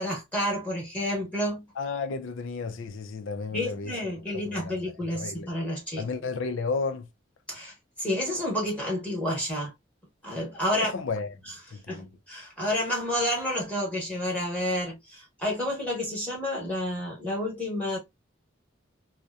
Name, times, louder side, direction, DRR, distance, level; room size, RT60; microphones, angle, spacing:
voice 1, 0.0-1.6 3.5-6.0 7.5-9.7 10.2-10.9 11.5-11.6 11.9-18.0, left 1 dB, 5° left, 0.9 m, -30 dB
voice 2, 1.8-3.9 4.4-4.7 5.1-5.5 6.0-7.1 10.7-11.3 11.7-12.1, left 4 dB, 75° left, 0.4 m, -32 dB
2.7 x 2.1 x 2.3 m
head